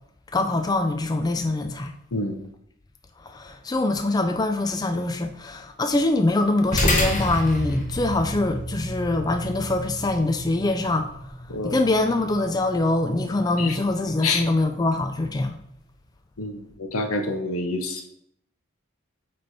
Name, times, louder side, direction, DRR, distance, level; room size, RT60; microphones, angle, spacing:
voice 1, 0.3-1.9 3.2-15.6, left 2 dB, 20° left, 6 dB, 0.3 m, -24 dB
sound 1, 6.7-15.4, left 1 dB, 35° left, 1.0 m, -31 dB
voice 2, 16.4-18.0, left 3 dB, 90° left, 6 dB, 0.9 m, -27 dB
8.6 x 3.3 x 4.1 m, 0.74 s
head